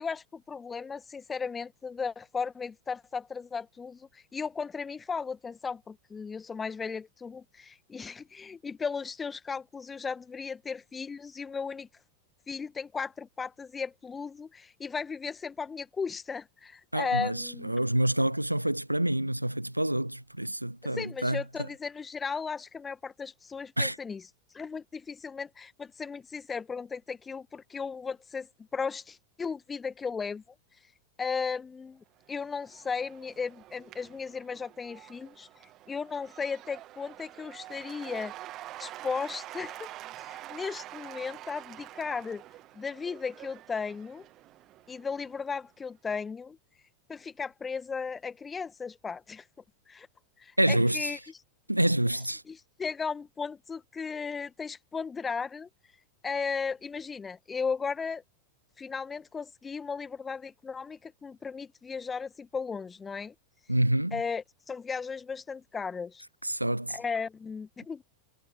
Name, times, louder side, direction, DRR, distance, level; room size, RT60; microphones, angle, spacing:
voice 1, 0.0-11.9 12.5-17.8 20.9-24.2 24.5-28.5 28.7-30.4 31.2-38.3 38.8-39.9 40.2-42.4 42.7-44.2 44.9-46.6 47.1-49.4 49.9-50.1 50.4-51.2 52.5-55.7 56.2-58.2 58.8-63.3 64.1-66.2 66.9-68.0, left 5 dB, 15° left, 1.3 m, -36 dB
voice 2, 16.9-21.4 23.8-24.0 50.6-51.2 51.7-52.4 63.7-64.2 66.4-67.0, right 1 dB, 85° right, 0.3 m, -27 dB
Cheering / Applause / Crowd, 32.2-45.6, right 15 dB, 35° right, 1.5 m, -47 dB
figure-of-eight pair, 90°, 0 cm